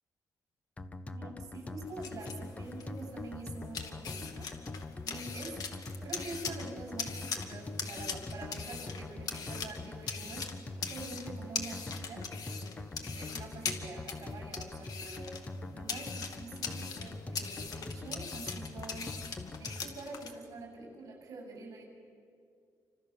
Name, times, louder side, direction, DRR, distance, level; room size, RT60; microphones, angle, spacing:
sound 1, 0.8-20.0, left 2 dB, 20° left, 0.9 m, -43 dB
voice 1, 1.1-5.6 6.0-10.5 10.8-12.3 13.1-15.3 15.7-19.2 19.6-21.8, right 3 dB, 55° right, 3 dB, 7.5 m, -46 dB
sound 2, 1.8-20.3, left 6 dB, 65° left, 2.3 m, -42 dB
29.5 x 26.0 x 7.2 m, 2.3 s
wide cardioid pair, 175°, 7 cm